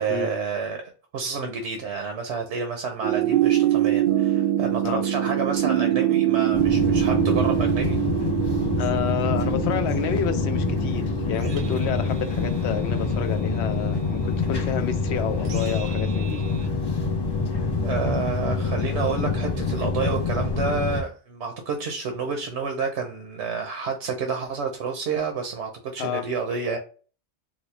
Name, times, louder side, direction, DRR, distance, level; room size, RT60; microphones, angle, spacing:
voice 1, 0.0-8.0 17.8-26.8, right 5 dB, 75° right, 4 dB, 1.0 m, -29 dB
sound 1, 3.0-16.6, right 12 dB, 60° right, 0.6 m, -25 dB
sound 2, 6.5-21.0, left 4 dB, 40° left, 0.4 m, -26 dB
voice 2, 8.8-16.4 26.0-26.3, left 9 dB, 75° left, 8 dB, 0.9 m, -30 dB
4.1 x 2.0 x 3.1 m, 0.37 s
omnidirectional pair, 1.2 m